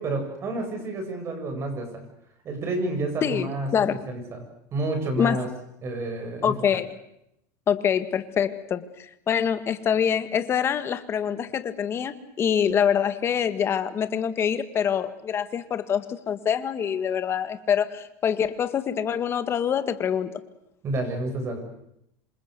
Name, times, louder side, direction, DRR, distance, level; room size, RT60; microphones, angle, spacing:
voice 1, 0.0-2.0 2.4-4.4 4.7-5.5 5.8-6.5 20.8-21.6, right 2 dB, 30° right, 5 dB, 7.9 m, -29 dB
voice 2, 3.2-4.0 5.2-5.4 6.4-7.0 7.7-20.4, left 8 dB, 25° left, 10 dB, 1.9 m, -25 dB
27.5 x 26.0 x 6.9 m, 0.80 s
supercardioid pair, 145°, 9 cm